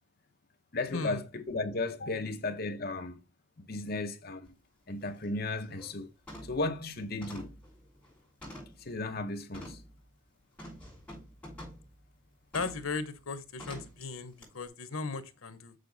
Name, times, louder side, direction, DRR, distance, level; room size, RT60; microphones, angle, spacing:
voice 1, 0.7-3.2 3.6-4.5 4.9-6.1 6.4-7.5 8.8-9.8, left 2 dB, 45° left, 0.8 m, -35 dB
sound 1, 4.5-4.6 5.0-5.2 5.6-5.9 6.3-6.7 7.2-8.9 9.5-9.9 10.6-11.9 12.5-12.9 13.6-14.0 14.4-14.5, equal, 5° left, 5.7 m, -47 dB
voice 2, 12.5-15.7, left 4 dB, 85° left, 1.1 m, -37 dB
6.7 x 6.7 x 4.0 m
head